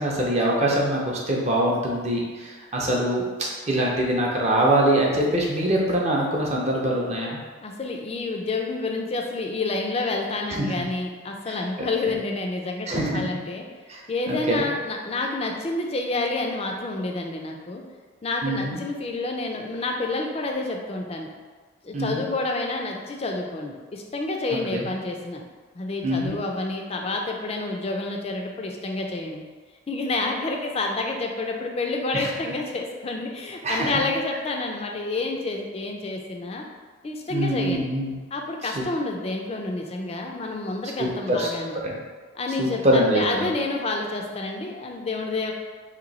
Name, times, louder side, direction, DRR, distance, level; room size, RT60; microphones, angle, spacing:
voice 1, 0.0-7.4 10.6-10.8 11.5-12.1 12.9-13.2 13.9-14.0 14.3-14.7 18.4-18.8 21.9-22.2 24.7-24.9 26.0-26.4 32.1-32.3 33.6-34.0 37.3-38.1 38.6-38.8 41.0-41.5 41.8-42.0 42.6-43.5, right 1 dB, 35° right, -2 dB, 0.5 m, -24 dB
voice 2, 7.6-12.9 13.1-13.7 14.1-17.8 18.2-21.3 21.8-25.4 25.7-29.4 29.9-36.6 37.0-37.9 38.3-41.8 42.3-45.5, left 2 dB, 30° left, 2 dB, 0.3 m, -29 dB
2.9 x 2.6 x 3.9 m, 1.4 s
head